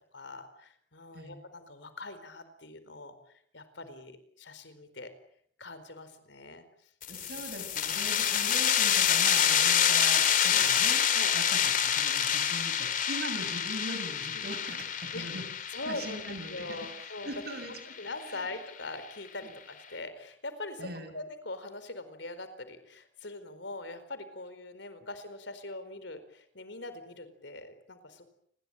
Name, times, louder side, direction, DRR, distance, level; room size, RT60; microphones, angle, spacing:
voice 1, 0.1-3.1 3.5-5.1 5.6-7.2 10.5-10.8 11.1-11.4 14.3-14.5 15.1-15.3 15.7-16.2 16.5-17.4 17.7-28.2, left 2 dB, 70° left, 11 dB, 4.5 m, -42 dB
sound 1, 7.0-18.3, left 9 dB, 45° left, 2.7 m, -27 dB
voice 2, 7.1-11.0 11.3-15.5 15.9-16.9 17.2-17.8 20.8-21.1, right 1 dB, 55° right, 7 dB, 7.6 m, -41 dB
29.0 x 21.5 x 9.0 m, 0.67 s
head